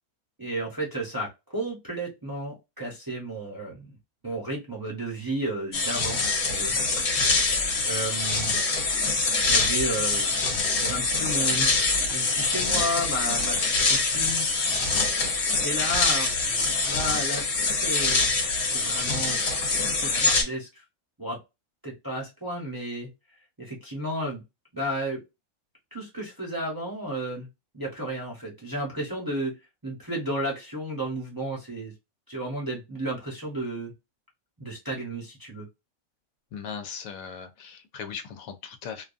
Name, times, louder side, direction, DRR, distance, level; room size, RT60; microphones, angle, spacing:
voice 1, 0.4-3.9 4.2-6.8 7.8-8.6 9.4-14.5 15.6-18.3 18.7-19.4 20.0-20.8 21.2-21.4 21.8-23.1 23.6-24.4 24.7-25.2 25.9-27.5 27.7-29.6 29.8-31.9 32.3-33.9 34.6-35.7, right 1 dB, 20° right, 0.7 m, -33 dB
sound 1, 5.7-20.4, left 3 dB, 55° left, 1.0 m, -24 dB
voice 2, 36.5-39.0, left 6 dB, 75° left, 1.0 m, -38 dB
2.6 x 2.3 x 2.4 m
omnidirectional pair, 1.5 m